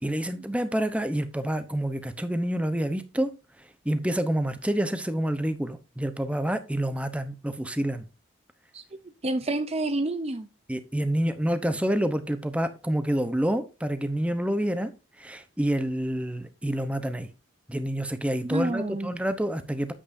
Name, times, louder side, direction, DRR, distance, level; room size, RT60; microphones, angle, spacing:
voice 1, 0.0-3.3 3.8-8.0 10.7-14.9 15.2-17.3 17.7-19.9, right 1 dB, 5° right, 0.9 m, -28 dB
voice 2, 9.2-10.5 18.4-19.1, right 2 dB, 30° right, 0.6 m, -28 dB
9.9 x 8.0 x 2.7 m
head